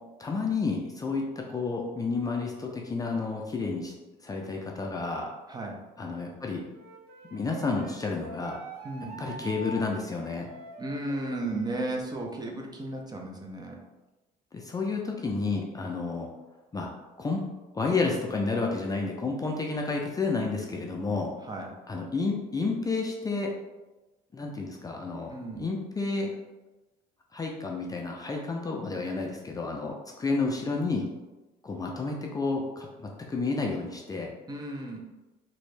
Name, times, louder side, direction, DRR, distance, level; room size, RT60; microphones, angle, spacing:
voice 1, 0.2-3.9 4.2-5.3 6.0-6.6 7.3-8.6 9.2-10.5 14.5-16.3 16.7-16.9 17.2-17.4 17.7-21.3 21.9-23.5 24.3-25.3 25.6-26.3 27.3-31.1 31.6-34.3, left 3 dB, 20° left, 0 dB, 0.4 m, -30 dB
voice 2, 5.5-5.8 8.8-9.2 10.8-13.8 21.4-21.8 25.3-25.7 30.4-30.5 34.5-35.0, right 2 dB, 25° right, 0 dB, 0.6 m, -34 dB
Wind instrument woodwind instrument, 6.7-12.0, right 2 dB, 70° right, 0.6 m, -45 dB
3.0 x 2.7 x 3.2 m, 1.1 s
cardioid pair, 110°, 17 cm